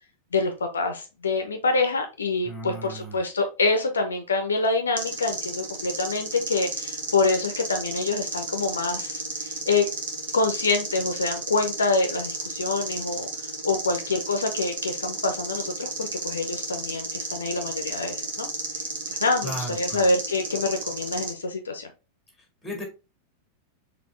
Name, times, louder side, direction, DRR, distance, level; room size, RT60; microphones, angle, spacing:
voice 1, 0.3-9.8 10.3-13.3 13.6-18.5 19.2-21.9, left 3 dB, 70° left, 6 dB, 0.6 m, -26 dB
voice 2, 2.5-3.2 19.4-20.0 22.6-22.8, equal, 5° left, 2 dB, 1.8 m, -35 dB
sound 1, 5.0-21.3, right 3 dB, 60° right, 1.1 m, -33 dB
4.2 x 2.9 x 3.2 m, 0.30 s
figure-of-eight pair, 90°, 0 cm